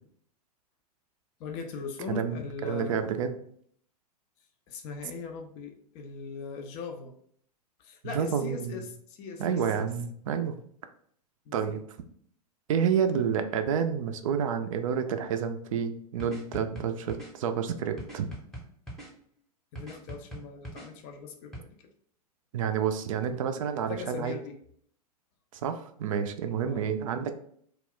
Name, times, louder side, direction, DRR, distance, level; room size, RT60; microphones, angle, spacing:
voice 1, 1.4-3.0 4.7-7.1 7.8-9.7 11.5-11.8 19.7-21.6 23.3-23.4 23.7-24.6 26.6-26.9, left 5 dB, 35° left, 4 dB, 0.4 m, -40 dB
voice 2, 2.7-3.3 8.0-8.8 9.4-10.6 11.5-11.8 12.7-18.3 22.5-24.4 25.6-27.3, right 7 dB, 55° right, 8 dB, 0.4 m, -29 dB
sound 1, 16.2-17.3 18.0-19.1 19.8-20.9 21.5-21.6, right 1 dB, ahead, 0.7 m, -41 dB
2.4 x 2.1 x 3.6 m, 0.62 s
figure-of-eight pair, 95°, 20 cm